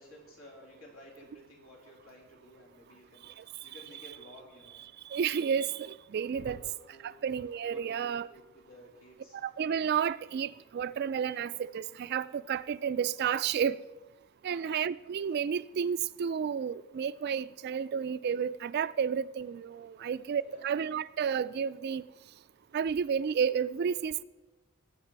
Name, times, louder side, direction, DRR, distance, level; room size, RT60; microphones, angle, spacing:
voice 1, 0.0-4.9 6.3-7.2 7.6-9.4 14.5-14.8 20.0-20.7, equal, 75° left, 3.6 m, -54 dB
voice 2, 5.1-6.6 7.0-8.3 9.3-13.8 14.4-22.0 22.7-24.2, right 7 dB, 50° right, 0.3 m, -31 dB
19.5 x 7.5 x 4.6 m
head